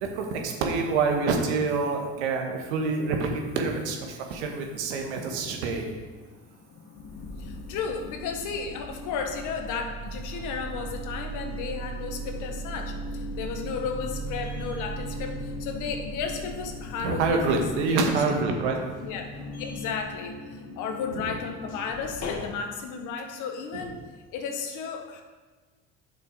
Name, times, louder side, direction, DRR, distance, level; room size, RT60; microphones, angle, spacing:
voice 1, 0.0-3.3 3.5-5.9 17.0-18.8, right 4 dB, 85° right, 2 dB, 1.6 m, -26 dB
sound 1, 5.5-6.3 6.6-22.5, equal, 50° left, 1.3 m, -37 dB
voice 2, 7.4-17.4 17.7-18.5 19.0-19.3 19.6-24.0 24.3-25.2, left 5 dB, 65° left, 5 dB, 1.5 m, -34 dB
8.9 x 6.7 x 4.0 m, 1.4 s
hypercardioid pair, 70°, 33 cm